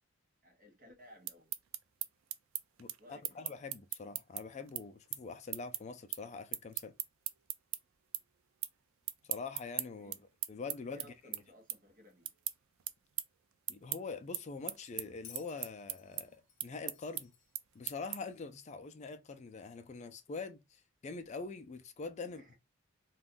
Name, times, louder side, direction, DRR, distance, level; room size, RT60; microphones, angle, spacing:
voice 1, 0.4-1.5 3.0-3.5 10.0-10.2 10.9-12.3 22.2-22.6, left 1 dB, 45° right, 1.0 m, -59 dB
sound 1, 1.1-7.8 8.1-8.8 9.0-18.4, right 13 dB, 80° right, 0.4 m, -40 dB
voice 2, 2.8-6.9 9.2-10.1 10.5-11.1 13.7-17.3 17.7-22.4, left 4 dB, 35° left, 0.3 m, -44 dB
Bell, 15.2-18.4 19.6-19.7, left 9 dB, 75° left, 0.7 m, -58 dB
2.5 x 2.3 x 3.4 m
head